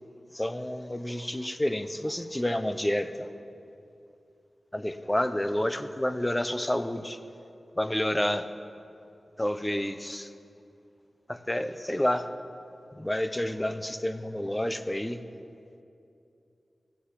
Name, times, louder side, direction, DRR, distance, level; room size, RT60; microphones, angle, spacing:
voice 1, 0.3-3.3 4.7-7.2 7.8-8.5 9.4-10.3 11.3-12.3 12.9-15.2, left 1 dB, 15° left, 11 dB, 0.8 m, -29 dB
14.5 x 9.2 x 9.9 m, 2.6 s
wide cardioid pair, 65°, 0 cm